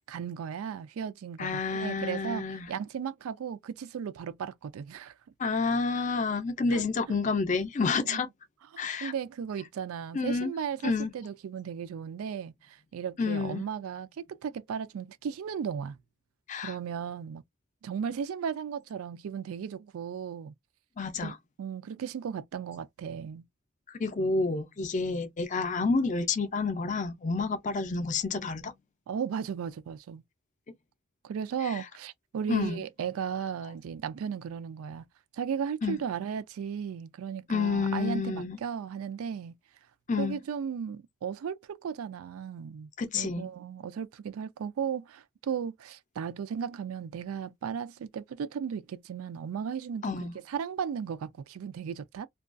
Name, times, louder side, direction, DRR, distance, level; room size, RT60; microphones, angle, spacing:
voice 1, 0.1-5.1 6.7-6.8 7.1-7.2 8.1-8.2 8.7-16.0 16.6-17.4 17.8-20.5 21.2-23.4 29.1-30.2 31.2-35.1 35.3-39.5 40.2-52.3, right 7 dB, 75° right, 0.3 m, -36 dB
voice 2, 1.4-2.7 5.4-8.3 8.8-9.1 10.1-10.5 10.8-11.1 13.2-13.7 16.5-16.7 21.0-21.4 24.0-28.7 31.6-31.8 32.5-32.8 35.8-36.0 37.5-38.6 40.1-40.4 43.0-43.5 50.0-50.3, left 4 dB, 35° left, 0.4 m, -29 dB
2.3 x 2.2 x 2.4 m
head